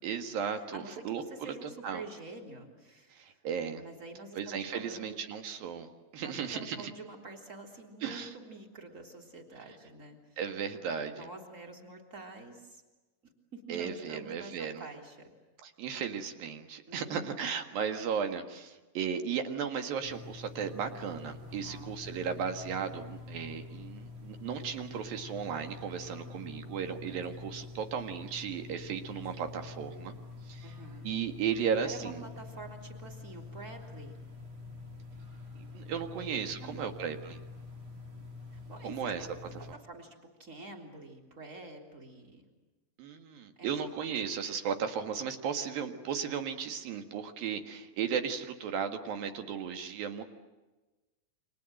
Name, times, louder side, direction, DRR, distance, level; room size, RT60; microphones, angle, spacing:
voice 1, 0.0-2.0 3.1-3.8 4.4-6.9 8.0-8.3 10.4-11.3 13.7-14.8 15.6-30.1 30.4-30.7 31.0-32.2 35.6-37.4 38.8-39.3 43.0-50.2, right 7 dB, 65° right, 7 dB, 3.3 m, -35 dB
voice 2, 0.6-3.4 3.8-5.2 6.2-10.4 11.1-12.8 13.2-15.3 16.9-17.5 21.5-22.0 30.6-31.1 31.9-34.2 36.1-36.2 36.6-37.0 38.5-39.3 39.7-42.5 43.6-43.7, right 2 dB, 20° right, 2 dB, 3.5 m, -47 dB
sound 1, 20.0-39.7, left 4 dB, 45° right, 3.5 m, -46 dB
29.5 x 25.0 x 7.8 m, 1.1 s
omnidirectional pair, 4.7 m